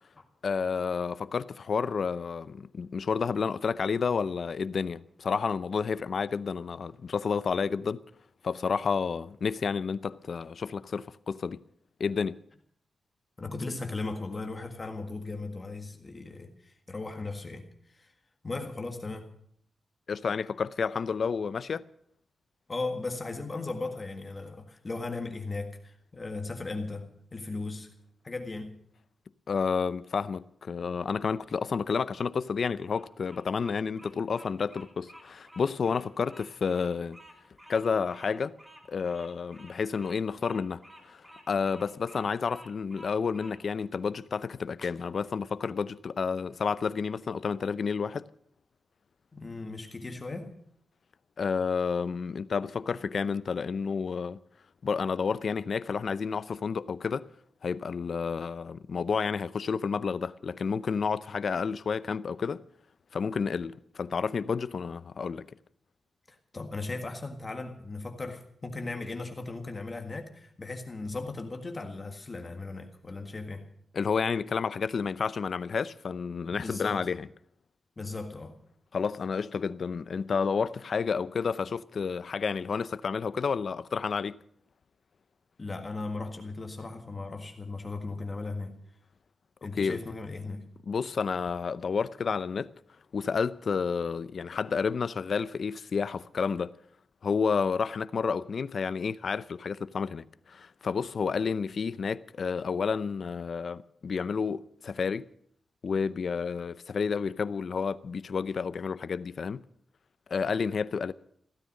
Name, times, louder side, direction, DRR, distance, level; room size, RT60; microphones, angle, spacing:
voice 1, 0.4-8.0 8.4-11.6 12.0-12.4 20.1-21.9 29.5-37.2 37.7-38.6 38.9-48.3 51.4-54.4 54.8-57.3 57.6-62.6 63.1-65.5 73.9-77.3 78.9-84.4 89.8-90.0 90.9-92.7 93.1-96.7 97.2-105.3 105.8-109.6 110.3-111.1, left 5 dB, 55° left, 0.6 m, -30 dB
voice 2, 13.4-18.1 18.4-19.4 22.7-27.9 28.2-28.8 49.3-50.6 66.3-73.7 76.6-77.1 78.0-78.6 85.6-88.8 89.6-90.7, left 3 dB, 25° left, 1.7 m, -37 dB
Bird vocalization bird call bird song, 32.7-43.6, equal, 15° right, 2.8 m, -52 dB
15.5 x 13.5 x 6.4 m
wide cardioid pair, 135°, 0 cm